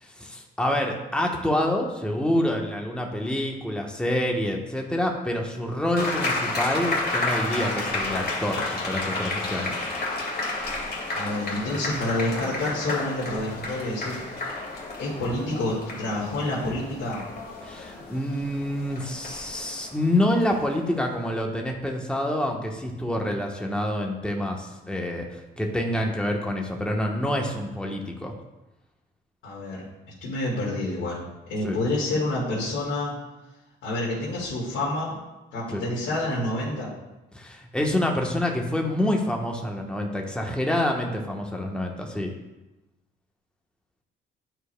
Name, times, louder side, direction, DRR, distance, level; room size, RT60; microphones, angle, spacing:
voice 1, 0.0-9.7 17.6-28.3 31.6-31.8 35.7-35.9 37.3-42.3, left 1 dB, 5° left, 1 dB, 1.1 m, -27 dB
sound 1, 5.9-20.9, left 2 dB, 50° left, 2.0 m, -31 dB
voice 2, 11.1-14.2 15.0-17.2 29.4-29.9 30.2-33.2 33.8-35.1 35.5-36.9, left 1 dB, 85° left, -8 dB, 2.1 m, -28 dB
11.0 x 4.7 x 2.2 m, 1.0 s
cardioid pair, 90°, 20 cm